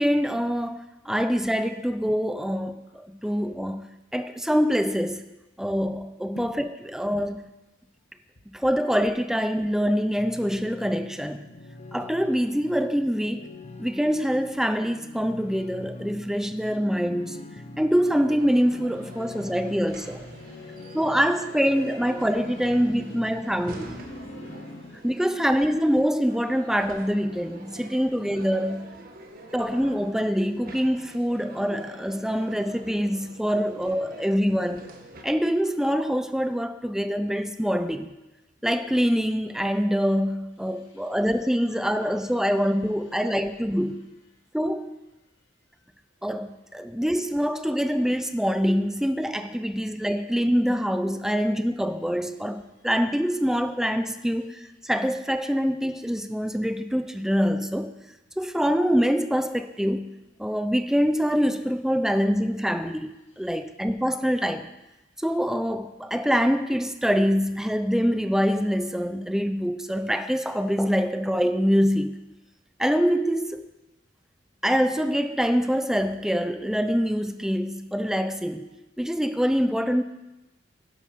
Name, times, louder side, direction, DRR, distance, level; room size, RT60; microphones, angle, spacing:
voice 1, 0.0-3.8 4.1-5.2 5.6-7.5 8.5-11.5 11.9-13.5 13.8-17.4 17.8-20.2 20.9-23.9 25.0-28.9 29.5-34.9 35.2-38.1 38.6-44.0 44.5-45.0 46.2-57.9 58.4-63.1 63.4-64.7 65.2-72.2 72.8-73.6 74.6-78.7 79.0-80.0, equal, 5° right, 9 dB, 0.6 m, -25 dB
sound 1, 10.2-25.0, left 2 dB, 35° left, 0.9 m, -44 dB
sound 2, 17.9-35.2, right 2 dB, 50° right, 1.6 m, -45 dB
voice 2, 19.1-21.3 21.5-25.1 29.3-29.5 31.0-31.1 31.4-31.6 40.6-43.6 45.2-45.3 45.7-45.9 52.8-52.9 63.2-63.7 65.1-65.2, left 1 dB, 85° left, -4 dB, 1.8 m, -55 dB
12.0 x 11.0 x 5.2 m, 0.99 s
head